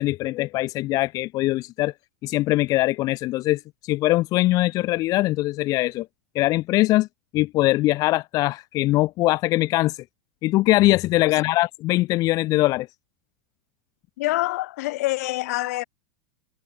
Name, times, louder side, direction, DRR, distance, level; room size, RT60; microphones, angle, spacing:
voice 1, 0.0-1.9 2.2-6.1 6.3-7.1 7.3-10.0 10.4-12.9, left 18 dB, 45° left, 0.7 m, -22 dB
voice 2, 14.2-15.8, left 19 dB, 70° left, 5.1 m, -26 dB
hypercardioid pair, 115°, 9 cm